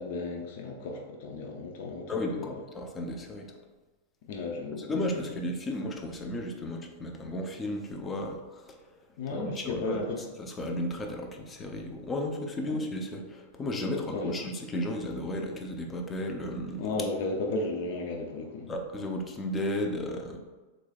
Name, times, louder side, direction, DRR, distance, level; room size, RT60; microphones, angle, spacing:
voice 1, 0.0-2.6 4.3-5.1 9.2-10.2 12.7-12.8 13.9-14.5 16.8-18.7, left 3 dB, 60° left, 1 dB, 0.6 m, -34 dB
voice 2, 2.1-3.5 4.8-8.4 9.3-10.0 10.4-16.8 18.7-20.4, left 1 dB, 20° left, 2 dB, 0.6 m, -34 dB
3.9 x 3.1 x 2.3 m, 1.2 s
hypercardioid pair, 115°, 0 cm